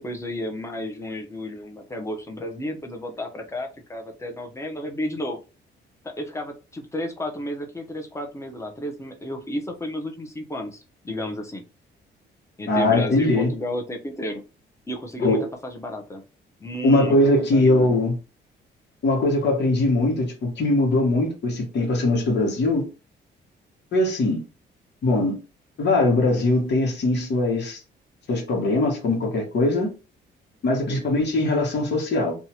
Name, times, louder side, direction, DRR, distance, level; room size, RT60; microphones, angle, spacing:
voice 1, 0.0-5.4 6.0-11.6 12.6-14.4 14.9-16.2 16.6-17.9 30.9-31.1, left 1 dB, 15° left, 0.8 m, -32 dB
voice 2, 12.7-13.5 15.2-15.4 16.8-18.1 19.0-22.8 23.9-24.4 25.0-25.3 25.8-27.8 28.3-29.9 30.6-32.3, left 2 dB, 60° left, 1.3 m, -21 dB
2.8 x 2.4 x 2.9 m
cardioid pair, 90°, 20 cm